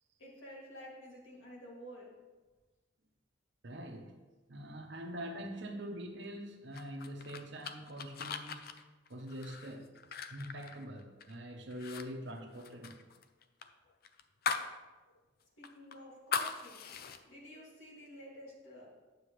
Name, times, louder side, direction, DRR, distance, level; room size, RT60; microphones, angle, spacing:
voice 1, 0.2-2.1 15.6-16.9 17.2-18.9, equal, 80° left, 2.5 m, -51 dB
voice 2, 3.6-4.2 4.5-8.8 9.1-10.0 10.3-13.0, equal, 60° right, 0.9 m, -44 dB
sound 1, 6.7-11.3 11.7-12.0 12.3-14.7 15.1-15.2 15.6-17.2, left 5 dB, 50° left, 0.5 m, -40 dB
9.4 x 7.0 x 3.2 m
head